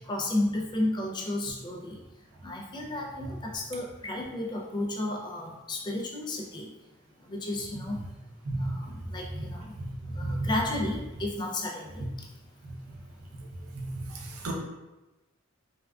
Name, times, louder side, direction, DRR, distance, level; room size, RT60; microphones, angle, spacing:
voice 1, 0.0-2.0 2.4-6.7 7.2-8.0 8.6-9.7 10.1-12.3, left 1 dB, 20° left, -1 dB, 0.4 m, -33 dB
voice 2, 8.5-8.7 9.3-9.4 9.8-9.9 10.2-10.5 12.6-12.7 14.4-14.5, right 2 dB, 80° right, 1 dB, 0.6 m, -31 dB
3.4 x 2.3 x 2.3 m, 1.1 s
head